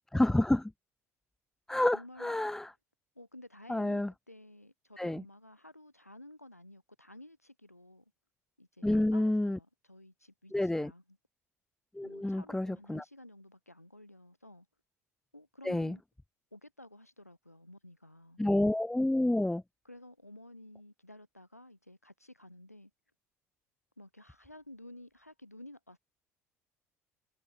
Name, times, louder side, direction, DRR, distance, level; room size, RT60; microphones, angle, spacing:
voice 1, 0.1-0.7 1.7-2.7 3.7-4.1 5.0-5.2 8.8-9.6 10.5-10.9 12.0-13.0 15.7-16.0 18.4-19.6, left 1 dB, 5° left, 0.4 m, -29 dB
voice 2, 1.9-2.5 3.1-8.0 8.6-11.2 12.0-14.7 15.3-16.0 16.5-18.4 19.8-22.9 24.0-26.0, left 1 dB, 90° left, 2.5 m, -53 dB
figure-of-eight pair, 60°, 8 cm